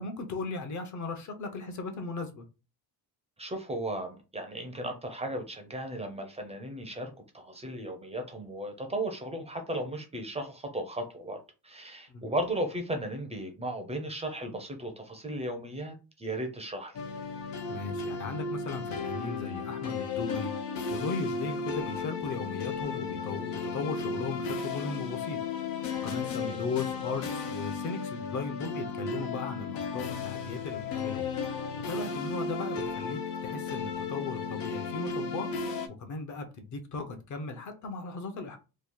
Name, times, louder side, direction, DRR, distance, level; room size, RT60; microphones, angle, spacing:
voice 1, 0.0-2.4 12.1-12.2 17.7-20.5 20.9-25.4 26.0-31.3 31.9-35.7 36.0-38.6, left 4 dB, 45° left, 0.8 m, -37 dB
voice 2, 3.4-11.4 11.6-16.9 26.3-26.6, right 1 dB, 15° right, 0.5 m, -36 dB
sound 1, 16.9-35.9, left 5 dB, 85° left, 0.7 m, -34 dB
3.0 x 2.3 x 3.7 m
cardioid pair, 155°, 40 cm